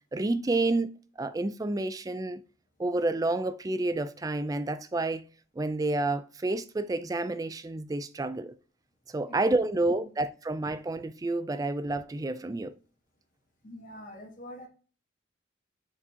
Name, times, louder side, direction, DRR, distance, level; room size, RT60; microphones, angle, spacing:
voice 1, 0.1-0.9 1.2-2.4 2.8-5.2 5.6-8.5 9.1-12.7, right 2 dB, 20° right, 0.3 m, -29 dB
voice 2, 13.6-14.7, left 1 dB, 40° left, 1.2 m, -45 dB
8.4 x 4.9 x 2.7 m
head